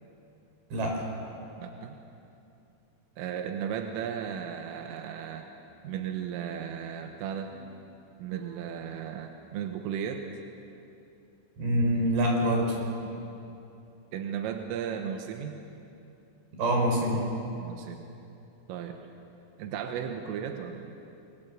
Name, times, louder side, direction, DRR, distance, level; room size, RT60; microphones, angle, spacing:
voice 1, 0.7-1.1 11.6-12.8 16.6-17.2, equal, 50° right, 0 dB, 6.8 m, -25 dB
voice 2, 1.6-1.9 3.2-5.5 5.8-7.5 8.2-10.2 14.1-15.6 17.6-18.1 18.7-19.0 19.6-21.0, right 8 dB, 90° right, 4 dB, 3.8 m, -35 dB
29.5 x 22.0 x 7.6 m, 2.8 s
omnidirectional pair, 5.8 m